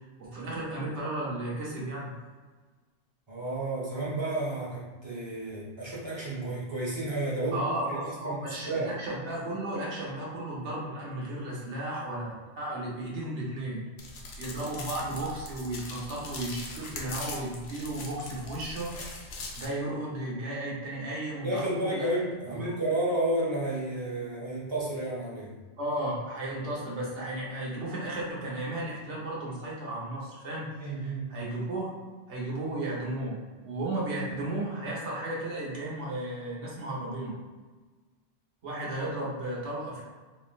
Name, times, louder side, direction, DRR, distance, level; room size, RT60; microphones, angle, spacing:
voice 1, 0.2-2.1 7.5-12.3 12.6-13.8 14.4-18.9 19.5-22.1 22.4-22.7 25.8-31.9 32.3-37.3 38.6-40.0, right 1 dB, 80° right, -5 dB, 1.2 m, -34 dB
voice 2, 3.3-7.6 7.9-8.0 8.2-8.9 21.4-25.5 30.8-31.3, right 1 dB, 30° right, -5 dB, 0.6 m, -31 dB
sound 1, 14.0-19.7, left 3 dB, 80° left, 0.9 m, -41 dB
3.2 x 2.6 x 2.3 m, 1.4 s
omnidirectional pair, 1.2 m